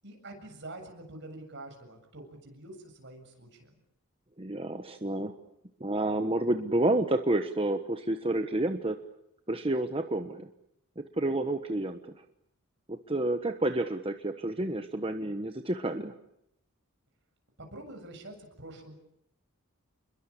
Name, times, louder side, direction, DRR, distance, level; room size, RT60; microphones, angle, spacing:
voice 1, 0.0-3.7 17.6-18.9, right 2 dB, 55° right, 4 dB, 7.6 m, -46 dB
voice 2, 4.4-5.4 5.8-9.0 9.5-10.5 11.0-12.1 12.9-16.1, right 1 dB, 25° right, 7 dB, 1.3 m, -30 dB
29.0 x 22.5 x 8.5 m, 0.78 s
head